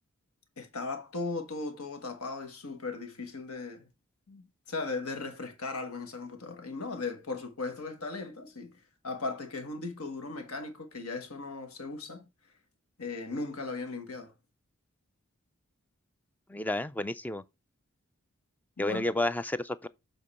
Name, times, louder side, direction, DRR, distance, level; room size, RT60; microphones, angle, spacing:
voice 1, 0.6-3.9 4.3-8.7 9.0-12.2 13.0-14.3 18.8-19.0, left 3 dB, 80° left, 1.4 m, -37 dB
voice 2, 16.5-17.4 18.8-19.9, left 1 dB, 10° left, 0.3 m, -31 dB
7.3 x 3.8 x 4.2 m
head